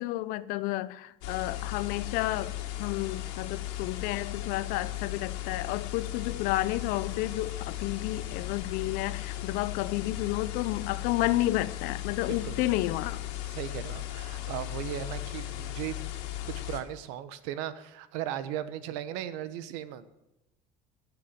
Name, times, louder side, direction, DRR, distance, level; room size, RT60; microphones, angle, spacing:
voice 1, 0.0-2.5 2.8-13.2, left 17 dB, 65° left, 0.7 m, -31 dB
sound 1, 1.2-16.8, left 13 dB, 85° left, 2.2 m, -37 dB
voice 2, 13.4-16.0 16.5-20.1, right 11 dB, 85° right, 1.1 m, -37 dB
15.0 x 7.4 x 7.6 m
cardioid pair, 145°, 16 cm